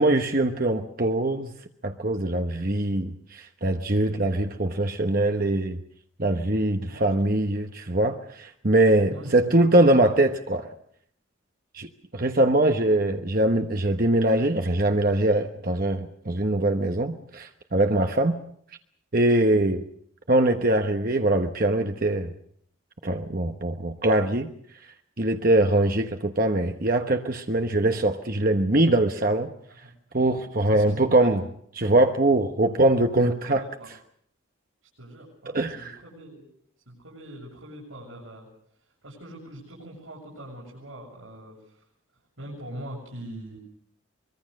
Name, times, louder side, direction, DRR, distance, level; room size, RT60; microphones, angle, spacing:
voice 1, 0.0-1.5 1.8-5.8 6.2-10.7 11.7-18.4 19.1-19.8 20.3-22.3 23.0-24.5 25.2-29.5 30.1-31.4 31.7-33.6 35.5-36.0, right 1 dB, 45° right, 5 dB, 1.2 m, -22 dB
voice 2, 9.1-9.5 29.8-29.9 30.7-31.3 33.2-33.9 35.0-36.5 36.9-38.5 39.0-41.6 42.4-43.6, right 1 dB, 85° right, -4 dB, 7.3 m, -42 dB
24.5 x 23.0 x 6.6 m, 0.67 s
head